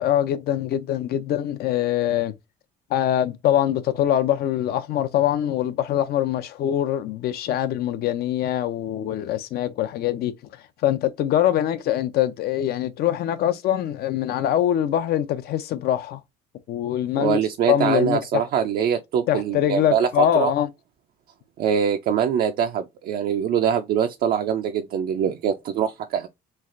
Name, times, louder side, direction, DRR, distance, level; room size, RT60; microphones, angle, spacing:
voice 1, 0.0-2.3 2.9-10.3 10.8-16.2 16.7-17.4 17.7-18.4 19.3-20.7, left 11 dB, 65° left, 0.5 m, -23 dB
voice 2, 17.2-20.5 21.6-26.3, right 8 dB, 65° right, 0.4 m, -23 dB
3.2 x 2.4 x 2.4 m
cardioid pair, 110°, 17 cm